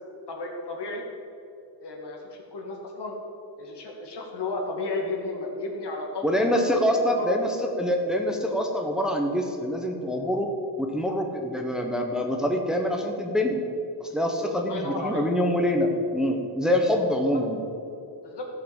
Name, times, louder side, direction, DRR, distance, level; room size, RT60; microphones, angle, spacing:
voice 1, 0.3-1.0 1.8-3.1 3.6-6.2 7.2-7.3 14.6-15.2 18.2-18.4, left 2 dB, 65° left, 0 dB, 2.4 m, -33 dB
voice 2, 6.2-10.5 10.8-13.6 14.0-17.7, equal, ahead, 2 dB, 1.1 m, -25 dB
14.0 x 5.8 x 7.2 m, 2.7 s
wide cardioid pair, 115°, 43 cm